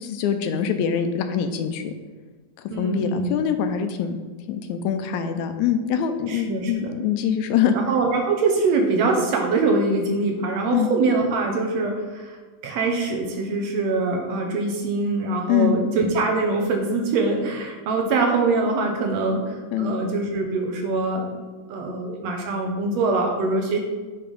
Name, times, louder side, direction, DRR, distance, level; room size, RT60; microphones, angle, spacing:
voice 1, 0.0-1.9 2.8-4.2 4.5-7.8 10.7-10.9 15.5-15.8 19.7-20.0, left 8 dB, 80° left, 7 dB, 1.9 m, -24 dB
voice 2, 2.7-3.3 6.3-7.0 7.7-12.4 12.6-21.4 21.7-23.8, right 3 dB, 70° right, 2 dB, 1.9 m, -23 dB
8.6 x 3.4 x 5.3 m, 1.4 s
omnidirectional pair, 3.4 m